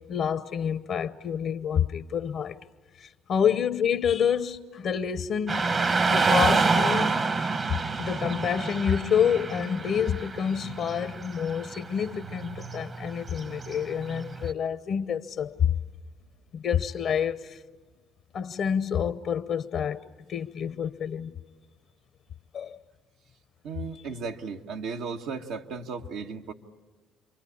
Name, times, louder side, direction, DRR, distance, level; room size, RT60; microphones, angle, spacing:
voice 1, 0.1-2.6 3.0-5.7 6.1-7.3 7.7-15.7 16.5-17.6 18.3-21.3 22.5-22.8, left 8 dB, 60° left, 0.8 m, -28 dB
Car passing by / Traffic noise roadway noise, 5.5-14.5, right 4 dB, 40° right, 1.2 m, -28 dB
voice 2, 23.6-26.5, right 5 dB, 80° right, 1.5 m, -35 dB
29.0 x 24.0 x 8.5 m
supercardioid pair, 80°, 0 cm